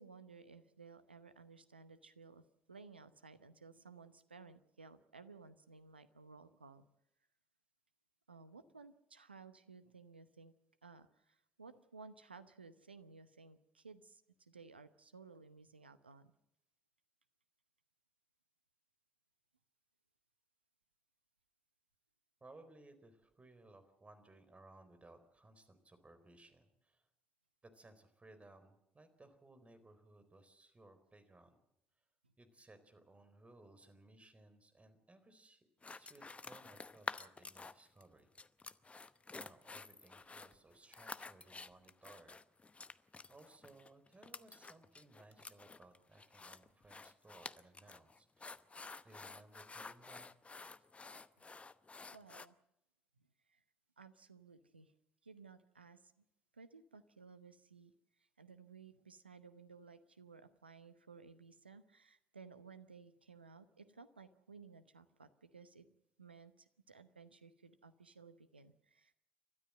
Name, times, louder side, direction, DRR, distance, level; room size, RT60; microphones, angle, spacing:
voice 1, 0.0-6.9 8.3-10.5 10.8-16.3 32.2-32.3 52.1-52.5 53.5-53.6 54.0-54.9 55.2-56.1 56.5-57.9 58.2-69.1, right 4 dB, 90° right, 12 dB, 0.8 m, -57 dB
voice 2, 22.4-27.1 27.6-31.6 32.4-38.3 38.9-42.4 43.3-48.6 49.0-50.3, right 2 dB, 25° right, 10 dB, 4.1 m, -61 dB
sound 1, 35.8-38.0 38.3-52.5, left 3 dB, 25° left, 0.9 m, -50 dB
30.0 x 13.0 x 7.6 m, 0.83 s
figure-of-eight pair, 50°, 5 cm